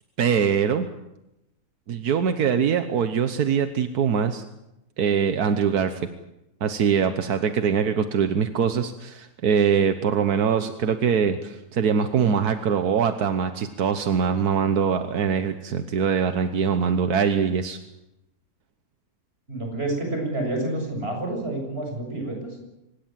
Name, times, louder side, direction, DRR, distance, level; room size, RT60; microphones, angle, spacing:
voice 1, 0.2-0.9 1.9-4.4 5.0-6.1 6.6-17.8, right 7 dB, 85° right, 9 dB, 1.6 m, -23 dB
voice 2, 19.5-22.6, right 2 dB, 40° right, 2 dB, 7.5 m, -29 dB
25.0 x 19.5 x 7.6 m, 0.90 s
omnidirectional pair, 1.6 m